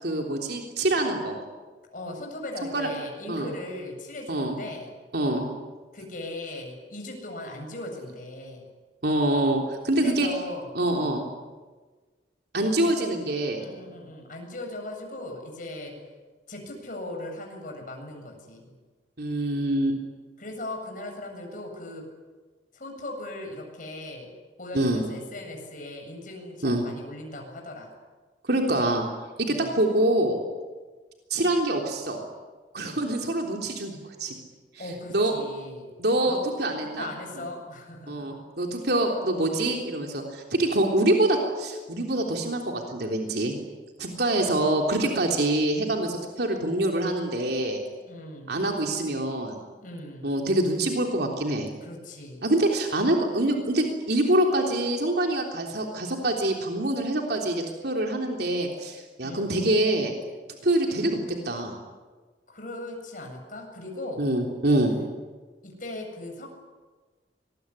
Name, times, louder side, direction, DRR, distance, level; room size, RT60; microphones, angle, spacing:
voice 1, 0.0-1.4 2.7-2.9 3.3-3.5 4.3-4.6 5.1-5.4 9.0-10.3 10.7-11.2 12.5-13.6 19.2-20.0 24.7-25.0 26.6-26.8 28.4-29.1 29.4-30.4 31.3-32.2 32.7-34.3 35.1-35.3 36.0-37.1 38.1-43.5 44.0-47.8 48.5-49.6 50.2-51.7 52.4-60.1 60.6-61.2 61.4-61.8 64.2-64.9, right 1 dB, 60° right, 1 dB, 3.5 m, -25 dB
voice 2, 1.9-4.9 5.9-8.7 10.0-11.1 12.8-13.3 13.6-15.9 16.5-18.7 20.4-22.0 22.7-24.3 24.6-27.9 29.5-29.7 32.8-33.0 34.8-35.9 36.2-36.5 37.0-38.4 48.1-48.6 49.8-50.3 51.8-52.4 59.2-59.5 62.5-64.2 64.9-65.1 65.6-66.5, left 1 dB, 45° left, 2 dB, 7.7 m, -38 dB
25.5 x 21.5 x 10.0 m, 1.4 s
head